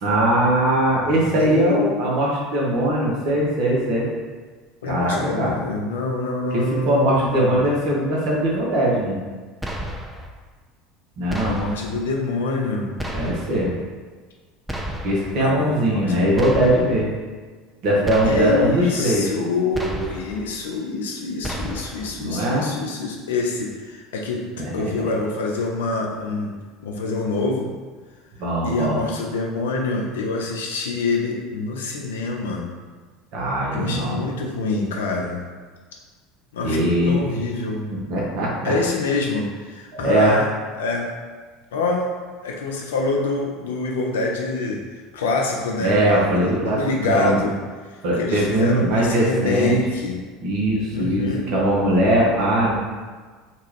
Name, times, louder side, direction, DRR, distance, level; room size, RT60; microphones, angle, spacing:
voice 1, 0.0-4.1 4.9-5.5 6.5-9.2 11.2-11.6 13.1-13.7 15.0-17.1 17.8-19.3 22.2-22.7 24.6-24.7 28.4-29.0 33.3-34.2 36.6-37.2 38.1-38.7 39.9-40.4 45.8-46.8 47.1-47.4 48.0-49.8 50.4-52.8, right 1 dB, 50° right, -4 dB, 0.9 m, -20 dB
voice 2, 1.0-1.9 4.8-7.6 11.4-12.9 15.4-16.2 18.2-24.4 24.7-26.6 26.8-27.7 28.6-32.7 33.7-35.4 36.5-37.9 38.6-40.5 40.8-41.1 41.7-42.1 42.4-44.8 45.1-46.0 46.3-47.6 48.2-50.2 50.9-51.5, left 3 dB, 70° left, 0 dB, 0.4 m, -26 dB
sound 1, 9.6-10.3 11.3-12.0 13.0-13.7 14.7-15.4 16.4-17.1 18.0-18.7 19.7-20.4 21.4-22.1, equal, 5° right, 0.4 m, -31 dB
2.9 x 2.3 x 3.1 m, 1.4 s
figure-of-eight pair, 70°, 0 cm